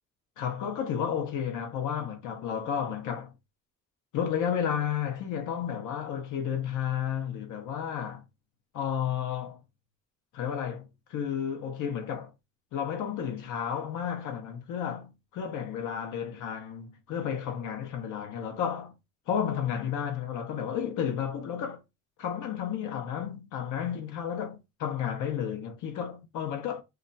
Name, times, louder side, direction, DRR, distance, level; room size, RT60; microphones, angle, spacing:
voice 1, 0.4-3.3 4.1-8.2 8.7-9.6 10.3-12.3 12.7-19.0 19.3-21.8 22.2-26.8, left 8 dB, 80° left, 0.7 m, -32 dB
2.5 x 2.2 x 3.9 m
cardioid pair, 90°, 30 cm